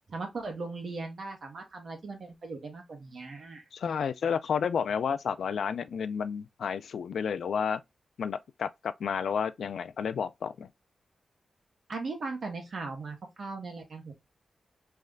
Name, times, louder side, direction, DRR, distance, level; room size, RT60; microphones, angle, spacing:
voice 1, 0.1-3.6 11.9-14.1, right 3 dB, 55° right, 1.6 m, -38 dB
voice 2, 3.7-7.8 8.2-10.7, left 7 dB, 85° left, 0.4 m, -31 dB
3.5 x 3.2 x 3.7 m
wide cardioid pair, 130°, 0 cm